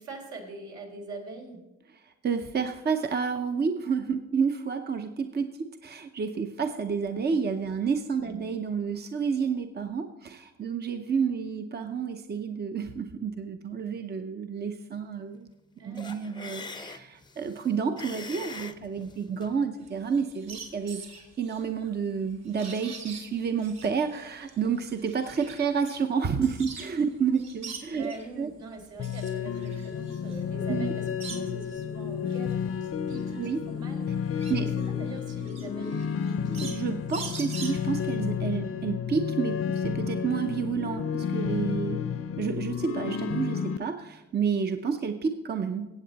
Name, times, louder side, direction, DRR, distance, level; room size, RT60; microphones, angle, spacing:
voice 1, 0.0-1.6 8.2-8.4 15.8-16.1 27.9-34.3 34.5-34.7 35.0-36.6, right 2 dB, 75° right, 0 dB, 3.7 m, -43 dB
voice 2, 2.0-15.5 15.8-21.0 21.4-28.5 30.7-30.9 33.4-33.6 34.5-34.7 36.5-42.0 42.4-45.9, right 6 dB, 35° right, 7 dB, 0.8 m, -30 dB
sound 1, 16.0-19.6, left 4 dB, 15° left, 0.7 m, -43 dB
sound 2, 19.8-27.0 27.3-28.3 28.8-31.7 32.1-38.1, right 5 dB, 60° right, 2.9 m, -44 dB
sound 3, 29.0-43.8, left 7 dB, 50° left, 0.7 m, -31 dB
17.0 x 7.8 x 4.0 m, 1.1 s
cardioid pair, 90°, 30 cm